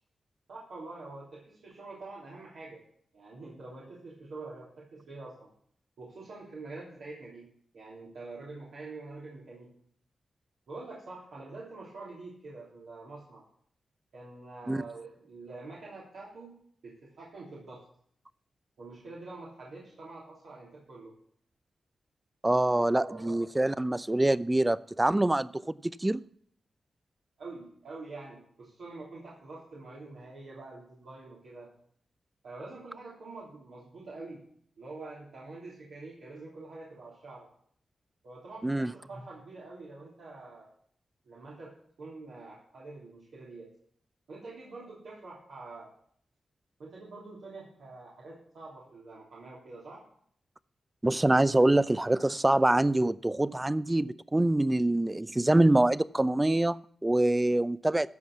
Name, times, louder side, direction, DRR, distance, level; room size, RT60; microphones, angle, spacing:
voice 1, 0.5-2.8 3.1-5.5 6.0-7.5 7.7-9.7 10.7-13.4 14.1-16.6 16.8-17.8 18.8-21.1 22.7-23.4 27.4-31.7 32.4-34.4 34.8-37.5 38.2-40.7 41.2-41.7 42.0-43.7 44.3-45.9 46.8-50.0 51.6-51.8, right 3 dB, 85° right, 3.3 m, -46 dB
voice 2, 22.4-25.6 26.0-26.2 38.6-38.9 51.0-58.1, right 1 dB, 20° right, 0.5 m, -25 dB
13.5 x 5.6 x 7.4 m
cardioid pair, 45°, 0 cm